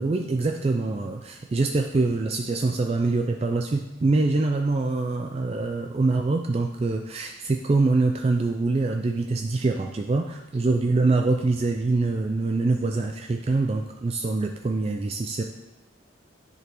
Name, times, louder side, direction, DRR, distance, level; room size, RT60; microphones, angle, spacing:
voice 1, 0.0-15.4, right 3 dB, 30° right, 4 dB, 0.3 m, -24 dB
9.5 x 5.1 x 3.0 m, 0.97 s
head